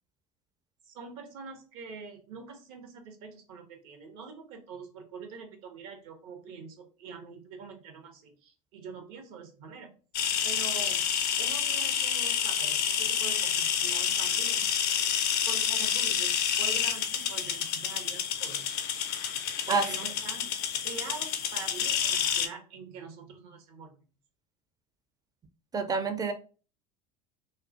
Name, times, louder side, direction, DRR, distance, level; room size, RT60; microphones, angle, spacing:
voice 1, 0.8-9.9 10.4-11.0 11.4-14.7 15.5-18.7 19.7-20.5 20.8-24.0, right 5 dB, 65° right, 5 dB, 0.7 m, -45 dB
sound 1, 10.1-22.5, left 8 dB, 50° left, 0.5 m, -29 dB
voice 2, 25.7-26.3, right 4 dB, 20° right, 8 dB, 0.4 m, -27 dB
2.3 x 2.2 x 2.5 m, 0.36 s
hypercardioid pair, 75°, 20 cm